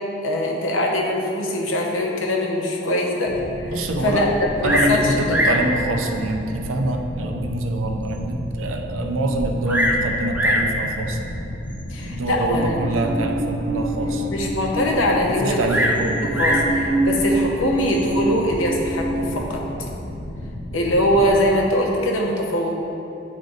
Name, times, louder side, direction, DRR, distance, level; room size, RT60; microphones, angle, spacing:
voice 1, 0.2-3.7 4.0-4.3 4.6-5.7 11.9-12.8 14.0-15.9 16.2-19.6 20.7-22.7, left 1 dB, 85° left, -1 dB, 0.9 m, -22 dB
sound 1, 3.2-21.5, left 1 dB, 50° left, 0.6 m, -33 dB
voice 2, 3.7-4.3 4.6-11.4 12.1-14.3 15.0-16.2, right 2 dB, 90° right, 3 dB, 0.6 m, -25 dB
Bird vocalization bird call bird song, 4.6-5.0 5.3-5.7 6.5-6.6 7.2-7.3 7.8-7.9 8.1-8.2 9.3-10.0 10.3-10.7 11.7-12.0 15.7-16.7 17.8-18.2, equal, 10° right, 0.5 m, -22 dB
Musical instrument, 12.5-19.4, right 2 dB, 30° right, 0.8 m, -26 dB
9.3 x 3.3 x 3.9 m, 2.9 s
head